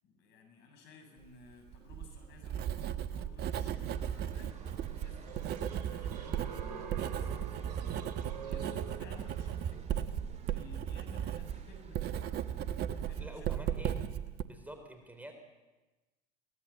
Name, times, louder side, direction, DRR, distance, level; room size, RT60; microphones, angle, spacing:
voice 1, 0.0-5.5 5.8-13.9, left 3 dB, 55° left, 4 dB, 7.8 m, -57 dB
Writing, 1.7-14.4, right 9 dB, 50° right, 1.3 m, -36 dB
sound 1, 3.5-13.4, right 5 dB, 30° right, 2.5 m, -55 dB
sound 2, 4.5-9.8, right 6 dB, 80° right, 3.7 m, -47 dB
voice 2, 13.2-14.0 14.4-15.3, right 1 dB, 5° right, 5 dB, 3.8 m, -48 dB
23.0 x 18.5 x 7.2 m, 1.2 s
hypercardioid pair, 75°, 21 cm